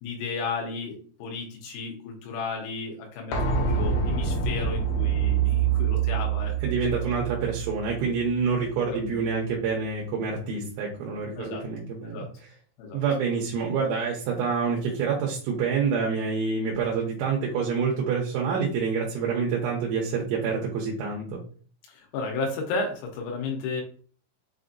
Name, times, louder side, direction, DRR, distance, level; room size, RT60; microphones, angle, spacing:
voice 1, 0.0-7.1 8.9-9.2 11.4-11.7 12.0-12.3 12.8-13.0 21.9-23.8, left 4 dB, 85° left, 0 dB, 3.6 m, -33 dB
sound 1, 3.3-9.0 9.3-9.4, right 6 dB, 65° left, 2.8 m, -26 dB
voice 2, 6.6-12.2 12.9-21.4, right 5 dB, 80° right, -2 dB, 3.0 m, -27 dB
7.6 x 2.7 x 2.5 m, 0.43 s
omnidirectional pair, 5.9 m